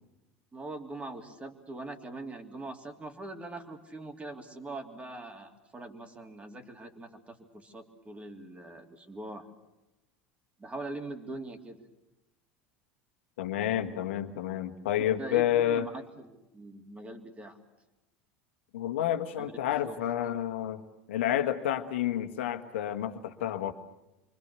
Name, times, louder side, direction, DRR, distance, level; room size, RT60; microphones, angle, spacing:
voice 1, 0.5-9.5 10.6-11.8 15.2-17.6 19.4-19.5 19.8-20.0, right 2 dB, 20° right, 5 dB, 3.0 m, -42 dB
voice 2, 13.4-15.9 18.7-20.8 21.1-23.7, left 11 dB, 70° left, 8 dB, 1.6 m, -29 dB
28.0 x 24.0 x 7.0 m, 0.97 s
figure-of-eight pair, 75°, 7 cm